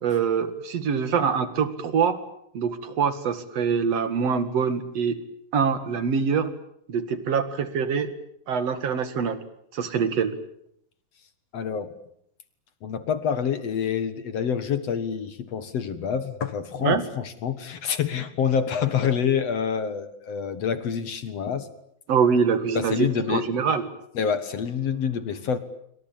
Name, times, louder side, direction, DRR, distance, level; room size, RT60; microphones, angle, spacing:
voice 1, 0.0-2.2 2.5-5.2 5.5-6.5 6.9-8.1 8.5-9.4 9.7-10.3 16.8-17.0 22.1-23.9, right 6 dB, 50° right, 11 dB, 2.6 m, -24 dB
voice 2, 11.5-11.9 12.8-21.7 22.7-23.5 24.2-25.6, left 7 dB, 55° left, 12 dB, 2.1 m, -27 dB
26.5 x 24.5 x 8.9 m, 0.71 s
omnidirectional pair, 4.4 m